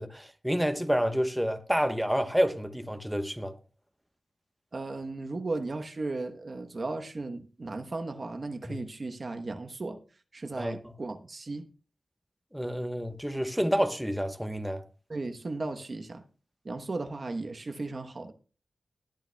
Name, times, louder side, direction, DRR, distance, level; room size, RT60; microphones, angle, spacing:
voice 1, 0.0-3.5 8.6-8.8 10.5-10.8 12.5-14.8, equal, 5° right, 1.0 m, -29 dB
voice 2, 4.7-10.0 10.3-11.6 15.1-16.2 16.6-18.3, right 3 dB, 55° right, 1.0 m, -36 dB
20.5 x 8.9 x 2.2 m
wide cardioid pair, 65°, 0 cm